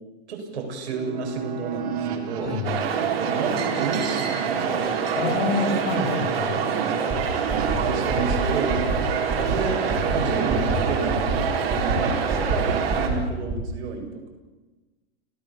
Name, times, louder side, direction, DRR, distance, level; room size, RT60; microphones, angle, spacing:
voice 1, 0.3-2.6 3.2-4.4 5.5-5.6 6.5-8.8 9.5-11.3 11.7-14.3, right 5 dB, 75° right, 2 dB, 7.0 m, -31 dB
sound 1, 0.9-12.8, right 5 dB, 35° right, 2.5 m, -33 dB
voice 2, 2.4-2.8 5.1-6.6, left 4 dB, 80° left, 0 dB, 5.3 m, -27 dB
sound 2, 2.6-13.1, right 7 dB, 60° right, 4.3 m, -26 dB
sound 3, 7.1-7.2 7.5-7.8 8.1-8.4 8.7-9.0 9.3-9.6 9.9-10.2 10.5-10.8 11.1-11.4 11.7-12.0 12.3-12.6 12.9-13.2 13.5-13.6, right 4 dB, 10° right, 2.2 m, -27 dB
30.0 x 15.0 x 7.1 m, 1.2 s
supercardioid pair, 175°, 33 cm